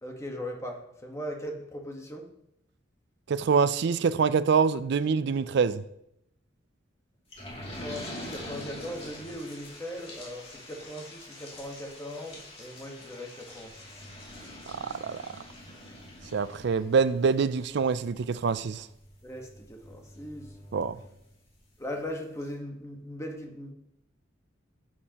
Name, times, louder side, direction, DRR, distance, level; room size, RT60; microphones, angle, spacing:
voice 1, 0.0-2.3 7.7-13.8 19.2-20.5 21.8-23.7, equal, 15° left, 1.3 m, -39 dB
voice 2, 3.3-5.8 14.8-15.2 16.3-18.9 20.7-21.0, right 5 dB, 60° right, 0.4 m, -25 dB
sound 1, 7.3-21.6 22.0-22.1 22.4-22.5, left 1 dB, 30° left, 2.6 m, -45 dB
11.0 x 7.5 x 2.9 m
head